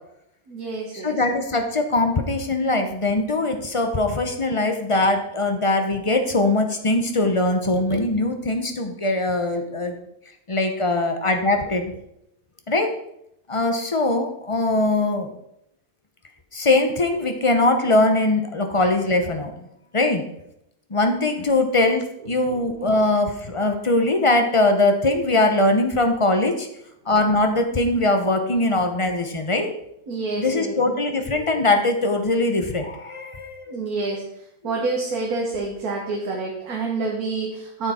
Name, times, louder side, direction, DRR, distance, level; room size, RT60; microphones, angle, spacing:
voice 1, 0.5-1.2 22.6-22.9 30.1-30.9 33.7-37.9, right 3 dB, 90° right, -1 dB, 1.7 m, -28 dB
voice 2, 1.0-9.9 10.5-12.0 12.7-13.0 13.5-15.3 16.5-19.5 19.9-20.2 20.9-26.7 27.1-29.7 30.4-33.8, left 2 dB, 25° left, 5 dB, 0.7 m, -21 dB
9.0 x 6.9 x 4.3 m, 0.78 s
omnidirectional pair, 1.5 m